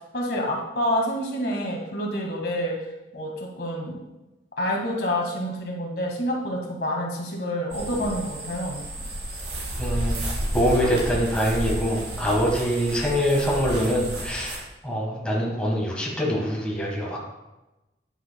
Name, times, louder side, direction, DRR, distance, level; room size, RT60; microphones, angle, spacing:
voice 1, 0.0-2.8 3.1-4.0 4.6-8.8, equal, 65° left, -1 dB, 1.8 m, -28 dB
sound 1, 7.7-14.6, right 1 dB, 80° right, 3.0 m, -31 dB
voice 2, 9.8-10.2 10.5-17.2, equal, 5° left, -3 dB, 1.5 m, -24 dB
9.6 x 9.1 x 2.2 m, 1.0 s
head